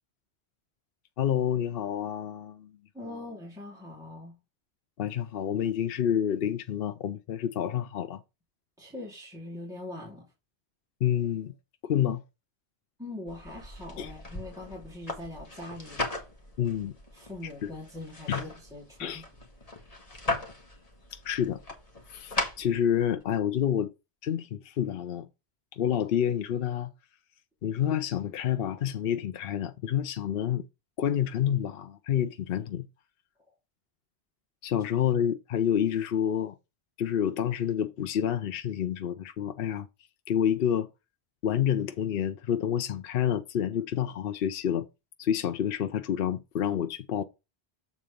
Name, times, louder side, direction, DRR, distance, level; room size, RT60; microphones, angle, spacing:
voice 1, 1.2-2.7 3.1-3.2 5.0-8.2 11.0-11.5 11.8-12.2 14.0-14.1 16.6-16.9 17.6-17.7 18.3-18.4 19.0-19.2 21.1-21.6 22.1-23.9 24.2-25.3 25.7-26.9 27.6-30.6 31.0-32.9 34.6-36.5 37.0-39.9 40.3-40.9 41.4-44.9 45.2-47.2, left 9 dB, 65° left, 0.8 m, -28 dB
voice 2, 2.9-4.4 8.8-10.3 13.0-16.0 17.1-19.4, left 2 dB, 5° right, 2.6 m, -42 dB
sound 1, 13.3-23.2, left 2 dB, 35° left, 1.8 m, -38 dB
7.5 x 4.1 x 5.1 m
omnidirectional pair, 1.1 m